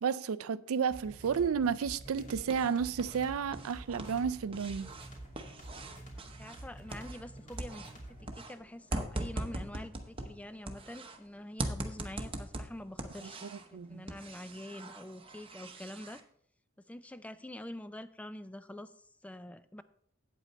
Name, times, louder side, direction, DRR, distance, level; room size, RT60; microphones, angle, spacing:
voice 1, 0.0-4.9 13.2-14.1, right 6 dB, 85° right, 0.4 m, -32 dB
sound 1, 0.9-8.4, right 1 dB, 35° left, 2.6 m, -49 dB
sound 2, 2.1-3.2 3.5-7.3 7.6-11.2 11.6-13.7 14.1-16.2, right 2 dB, 25° right, 0.8 m, -41 dB
voice 2, 6.2-7.9 8.2-16.2 16.9-19.8, left 1 dB, 5° left, 0.3 m, -46 dB
8.6 x 8.2 x 4.1 m
head